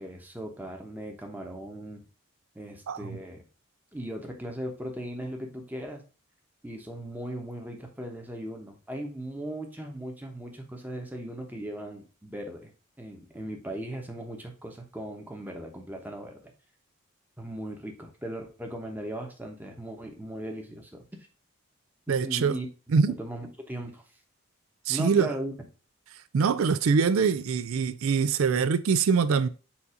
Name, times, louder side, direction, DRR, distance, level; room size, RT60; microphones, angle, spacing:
voice 1, 0.0-2.0 2.5-3.4 3.9-6.0 6.6-12.7 13.0-16.5 17.4-21.0 22.1-22.7 23.1-24.0 24.9-25.5, right 1 dB, 10° right, 1.0 m, -38 dB
voice 2, 22.1-22.5 22.9-23.2 24.9-25.3 26.3-29.5, right 5 dB, 90° right, 0.4 m, -23 dB
7.0 x 2.7 x 4.9 m
head